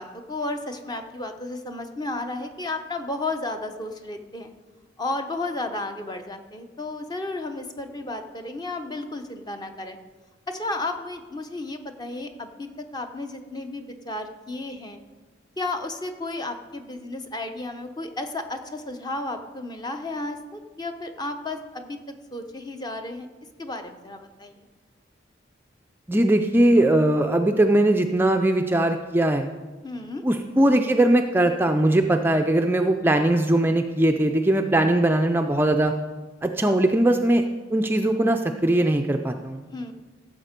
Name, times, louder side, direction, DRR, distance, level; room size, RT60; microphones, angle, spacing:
voice 1, 0.0-4.5 5.0-10.0 10.5-15.0 15.6-22.0 22.3-23.3 23.6-24.7 29.8-30.2 39.7-39.9, left 2 dB, 20° left, 6 dB, 0.8 m, -33 dB
voice 2, 26.1-29.5 30.2-35.9 36.4-37.4 37.7-39.6, right 1 dB, 10° right, 5 dB, 0.4 m, -20 dB
15.5 x 7.2 x 5.2 m, 1.3 s
head